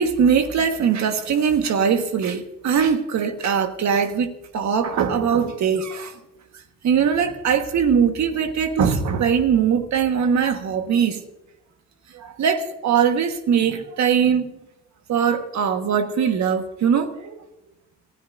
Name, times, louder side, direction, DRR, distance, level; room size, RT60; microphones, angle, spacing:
voice 1, 0.0-6.2 6.8-11.2 12.1-14.5 15.1-17.4, right 7 dB, 65° right, 1.5 m, -21 dB
29.0 x 13.0 x 2.6 m
cardioid pair, 90°, 30 cm